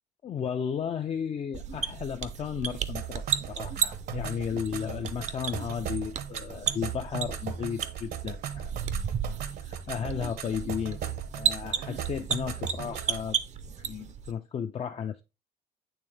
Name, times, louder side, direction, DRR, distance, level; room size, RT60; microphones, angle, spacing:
voice 1, 0.2-9.0 9.6-11.0 11.3-13.4 13.7-15.2, left 7 dB, 35° left, 0.4 m, -34 dB
sound 1, 1.5-14.3, right 7 dB, 45° right, 0.6 m, -34 dB
sound 2, 2.9-13.3, right 9 dB, 70° right, 0.9 m, -38 dB
8.9 x 3.3 x 3.2 m
cardioid pair, 110°, 17 cm